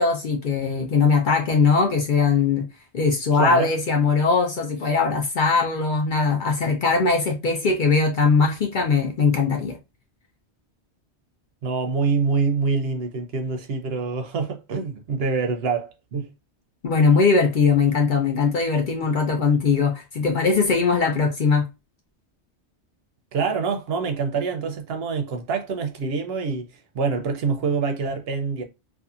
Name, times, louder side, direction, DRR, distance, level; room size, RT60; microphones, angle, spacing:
voice 1, 0.0-2.6 2.9-9.8 16.8-21.6, left 4 dB, 55° left, 0.6 m, -20 dB
voice 2, 3.3-3.7 11.6-16.3 23.3-26.7 26.9-28.6, right 5 dB, 65° right, 0.8 m, -25 dB
2.6 x 2.4 x 2.3 m
omnidirectional pair, 1.2 m